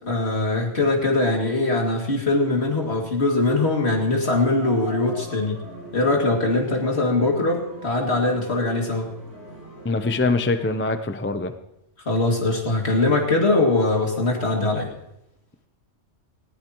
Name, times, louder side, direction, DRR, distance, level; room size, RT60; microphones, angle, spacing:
voice 1, 0.0-5.6 5.9-9.1 12.1-14.9, left 2 dB, 60° left, 0 dB, 2.7 m, -22 dB
sound 1, 4.2-10.8, right 1 dB, 85° right, 6.9 m, -40 dB
voice 2, 9.8-11.5, left 3 dB, 15° left, 9 dB, 0.5 m, -23 dB
19.5 x 15.5 x 3.0 m, 0.87 s
omnidirectional pair, 1.2 m